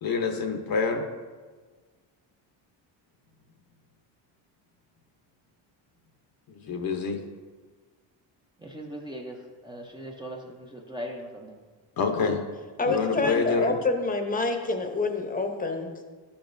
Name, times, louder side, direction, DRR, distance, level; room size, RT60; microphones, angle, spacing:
voice 1, 0.0-1.0 6.6-7.2 12.0-12.4 12.9-13.7, left 4 dB, 45° left, 5 dB, 0.9 m, -26 dB
voice 2, 8.6-11.6, equal, 10° right, -1 dB, 0.6 m, -39 dB
voice 3, 12.8-16.0, left 3 dB, 15° left, 4 dB, 0.9 m, -27 dB
12.0 x 7.1 x 2.6 m, 1.4 s
cardioid pair, 125°, 48 cm